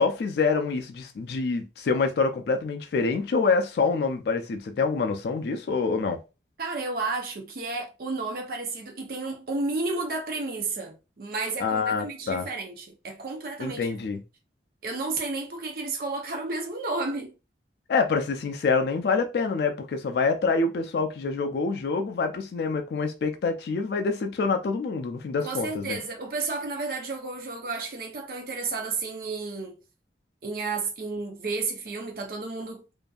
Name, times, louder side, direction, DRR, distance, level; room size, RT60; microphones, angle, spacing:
voice 1, 0.0-6.2 11.6-12.5 13.6-14.2 17.9-26.0, left 4 dB, 65° left, 0.3 m, -26 dB
voice 2, 6.6-14.0 14.8-17.3 25.4-29.7 30.4-32.9, right 3 dB, 50° right, 0.5 m, -32 dB
2.6 x 2.5 x 2.2 m
head